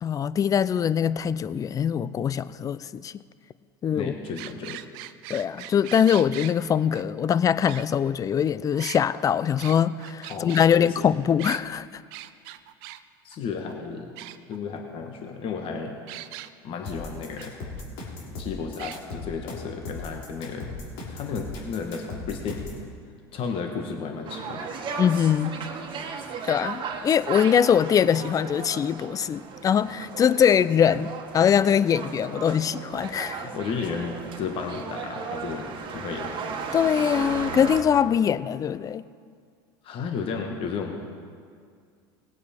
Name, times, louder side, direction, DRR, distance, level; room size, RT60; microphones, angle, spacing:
voice 1, 0.0-3.1 3.8-4.1 5.3-11.9 25.0-25.6 26.5-33.5 36.7-39.0, left 8 dB, 30° left, 17 dB, 0.4 m, -22 dB
voice 2, 3.9-4.8 10.3-10.5 10.8-11.1 13.2-14.1 14.5-16.0 16.6-17.5 18.4-20.7 21.0-22.7 23.3-24.7 33.4-36.3 39.8-41.2, left 5 dB, 45° left, 3 dB, 1.4 m, -33 dB
sound 1, 4.2-6.5 6.9-7.0 7.7-8.3 8.7-10.7 11.4-11.6 12.1-13.0 13.3-13.4 13.7-13.8 14.2-14.8 16.1-16.5 17.4-17.5 17.8-17.9 18.8-19.0, right 15 dB, 70° right, 0.6 m, -40 dB
sound 2, 16.9-22.8, left 3 dB, 75° left, 3.2 m, -37 dB
sound 3, 24.2-37.8, right 5 dB, 40° right, 1.4 m, -36 dB
19.0 x 8.2 x 4.4 m, 2.1 s
hypercardioid pair, 100°, 12 cm